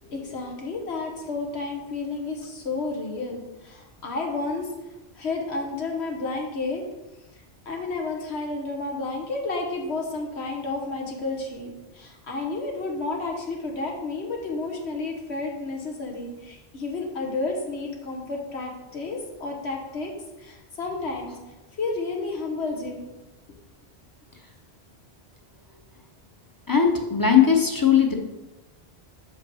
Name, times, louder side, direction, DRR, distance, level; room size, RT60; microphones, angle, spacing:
voice 1, 0.0-4.7 5.1-6.8 7.6-20.1 20.4-21.4 21.8-23.1, left 3 dB, 85° left, 1 dB, 1.5 m, -31 dB
voice 2, 26.7-28.1, left 7 dB, 20° left, 2 dB, 0.8 m, -19 dB
5.4 x 5.2 x 6.2 m, 1.0 s
omnidirectional pair, 1.1 m